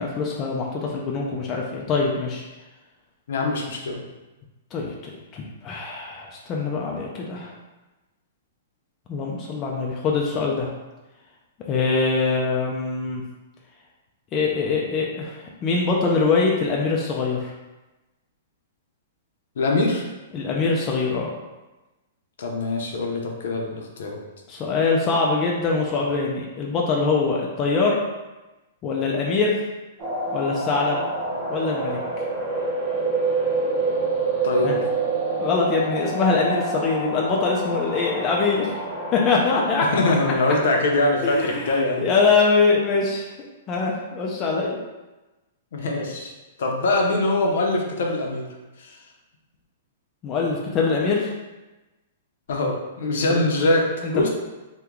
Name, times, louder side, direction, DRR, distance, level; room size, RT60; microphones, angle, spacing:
voice 1, 0.0-2.4 4.7-7.5 9.1-10.7 11.7-13.2 14.3-17.5 20.3-21.3 24.5-28.0 28.8-29.6 30.3-31.0 31.5-32.0 34.6-34.8 35.4-38.7 39.1-40.0 41.2-43.3 43.7-44.8 50.2-51.3 53.3-53.4 54.0-54.1, left 4 dB, 20° left, -2 dB, 0.3 m, -23 dB
voice 2, 3.3-4.0 19.6-20.0 22.4-24.2 34.4-34.8 39.9-42.0 45.7-46.3 46.6-48.5 48.8-49.0 52.5-53.9 54.1-54.3, left 2 dB, 65° left, 1 dB, 0.6 m, -23 dB
sound 1, 30.0-41.3, right 3 dB, 15° right, 0.7 m, -27 dB
2.9 x 2.2 x 3.6 m, 1.1 s
hypercardioid pair, 165°, 0 cm